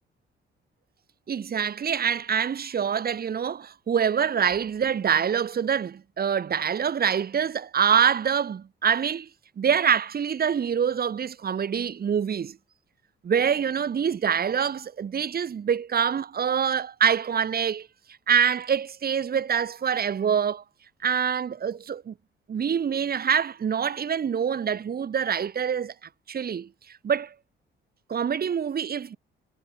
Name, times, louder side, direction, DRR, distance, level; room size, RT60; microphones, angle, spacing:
voice 1, 1.3-9.3 9.6-12.6 13.2-17.9 18.3-20.6 21.0-22.1 22.5-27.3 28.1-29.2, right 7 dB, 50° right, 4.3 m, -25 dB
cardioid pair, 90°, 20 cm